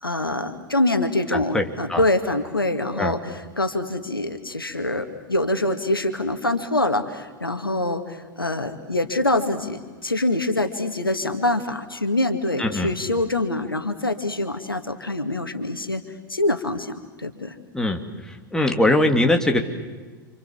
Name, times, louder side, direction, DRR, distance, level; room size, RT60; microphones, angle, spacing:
voice 1, 0.0-16.0 16.3-17.6, left 2 dB, 90° left, 8 dB, 2.0 m, -25 dB
voice 2, 1.3-1.6 1.9-2.0 3.0-3.1 12.6-12.9 17.7-18.0 18.3-19.6, left 1 dB, 5° left, 3 dB, 3.1 m, -21 dB
30.0 x 27.0 x 7.4 m, 1.4 s
figure-of-eight pair, 85°, 11 cm